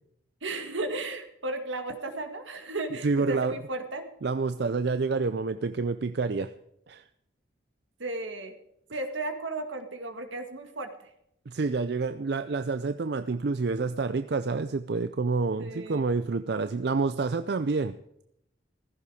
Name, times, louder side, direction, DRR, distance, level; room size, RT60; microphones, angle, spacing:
voice 1, 0.4-4.0 8.0-8.6 8.9-11.1 15.6-16.0, right 2 dB, 80° right, 6 dB, 1.9 m, -34 dB
voice 2, 3.0-3.6 4.2-6.5 6.9-7.0 11.5-18.0, right 4 dB, 55° right, 11 dB, 0.5 m, -28 dB
15.5 x 14.0 x 4.9 m, 0.77 s
head